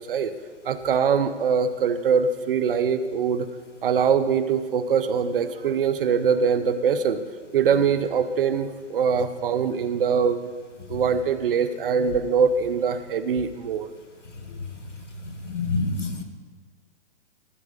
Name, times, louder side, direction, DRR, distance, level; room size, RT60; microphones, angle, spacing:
voice 1, 0.6-3.5 3.8-7.2 7.5-10.5 10.9-13.9, right 6 dB, 50° right, 12 dB, 0.7 m, -23 dB
voice 2, 15.5-16.2, left 3 dB, 90° left, 5 dB, 1.6 m, -26 dB
14.0 x 4.7 x 6.4 m, 1.5 s
hypercardioid pair, 140°, 35 cm